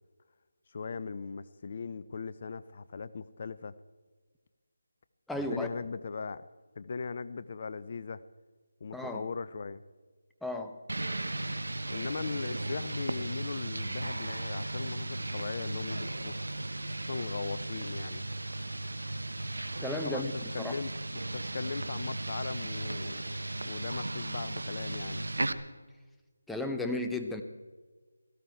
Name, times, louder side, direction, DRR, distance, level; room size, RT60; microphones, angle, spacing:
voice 1, 0.7-3.7 5.4-6.4 6.8-8.2 8.8-9.8 11.9-16.4 17.1-18.2 20.0-20.9 21.3-23.2 23.6-25.3, left 4 dB, 40° left, 15 dB, 0.6 m, -39 dB
voice 2, 5.3-5.7 8.9-9.3 10.4-10.8 19.8-20.3 20.6-20.7 26.5-27.4, left 1 dB, ahead, 5 dB, 0.8 m, -34 dB
sound 1, 10.9-25.5, right 2 dB, 75° right, 1.0 m, -36 dB
17.5 x 15.5 x 4.5 m, 1.4 s
figure-of-eight pair, 160°, 0 cm